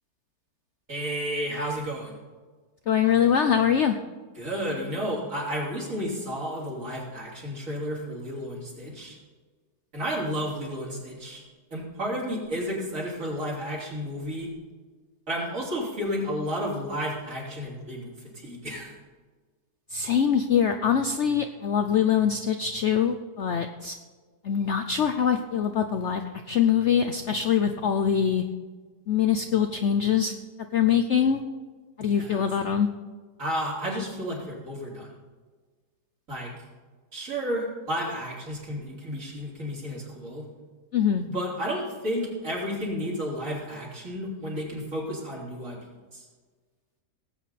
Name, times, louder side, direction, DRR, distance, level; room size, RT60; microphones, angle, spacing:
voice 1, 0.9-2.1 4.4-9.2 9.9-11.4 11.7-14.5 15.3-18.9 32.1-32.4 33.4-35.1 36.3-36.5 37.1-40.5 41.3-45.8 46.1-46.2, equal, 50° right, -4 dB, 3.8 m, -32 dB
voice 2, 2.9-4.0 19.9-24.0 24.4-28.4 29.1-30.3 30.7-31.4 32.0-32.9 40.9-41.2, left 8 dB, 60° left, 7 dB, 0.7 m, -23 dB
18.0 x 8.5 x 4.1 m, 1.4 s
omnidirectional pair, 1.8 m